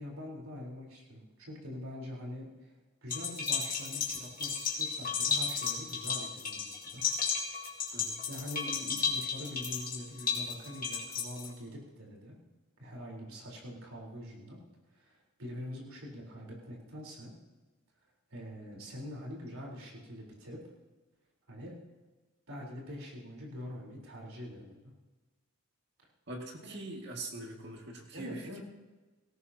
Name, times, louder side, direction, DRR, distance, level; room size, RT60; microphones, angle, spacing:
voice 1, 0.0-2.7 3.0-7.0 8.3-12.4 12.8-14.6 14.9-17.3 18.3-20.6 21.5-21.8 22.5-24.9 26.6-26.8 28.1-28.6, left 1 dB, 90° right, -2 dB, 4.1 m, -44 dB
sound 1, 3.1-11.5, left 6 dB, 40° left, 2.4 m, -34 dB
voice 2, 7.9-8.2 26.3-28.6, right 2 dB, 55° right, 1 dB, 2.1 m, -43 dB
18.5 x 17.5 x 2.9 m, 1.2 s
head